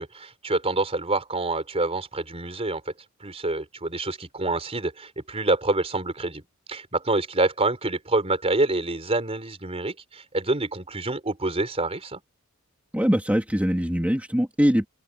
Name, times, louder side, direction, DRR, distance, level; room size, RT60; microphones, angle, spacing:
voice 1, 0.0-2.9 3.2-6.4 6.7-12.2, right 2 dB, 30° right, 4.2 m, -27 dB
voice 2, 12.9-14.9, equal, 5° right, 2.6 m, -22 dB
open air
head